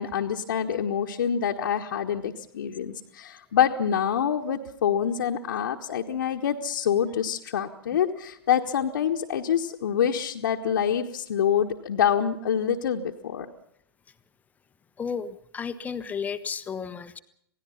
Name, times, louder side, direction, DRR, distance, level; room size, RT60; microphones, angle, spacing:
voice 1, 0.0-13.5, left 8 dB, 55° left, 0 dB, 1.5 m, -26 dB
voice 2, 15.0-17.2, left 6 dB, 10° left, 12 dB, 1.1 m, -33 dB
27.5 x 18.0 x 5.8 m, 0.72 s
figure-of-eight pair, 115°, 13 cm